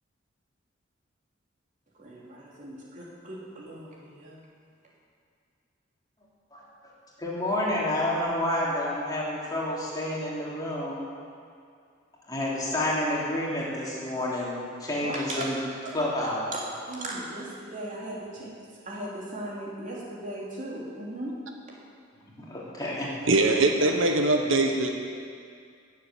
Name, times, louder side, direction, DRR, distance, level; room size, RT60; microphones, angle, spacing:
voice 1, 2.0-4.4 15.0-15.4 15.8-15.9 16.5-18.5 18.8-21.3, right 1 dB, 40° right, -5 dB, 3.3 m, -37 dB
voice 2, 7.2-11.0 12.3-15.6 15.9-16.4 22.4-23.1 23.8-23.9, left 1 dB, 20° left, -6 dB, 3.1 m, -29 dB
voice 3, 23.3-24.9, right 2 dB, 85° right, 3 dB, 1.2 m, -22 dB
18.0 x 7.7 x 7.5 m, 2.3 s
head